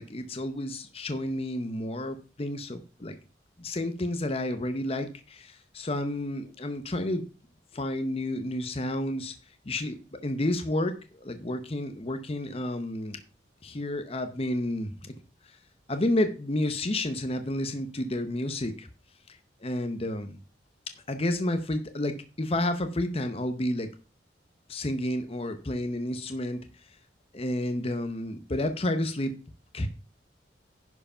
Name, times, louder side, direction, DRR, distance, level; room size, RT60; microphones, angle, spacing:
voice 1, 0.0-3.2 3.6-7.2 7.7-9.3 9.7-10.0 10.2-10.9 11.2-13.2 13.6-15.1 15.9-18.9 19.6-20.4 21.1-23.9 24.7-26.6 27.3-29.3 29.7-29.9, left 1 dB, 30° left, 8 dB, 0.8 m, -30 dB
10.5 x 4.8 x 5.6 m, 0.35 s
head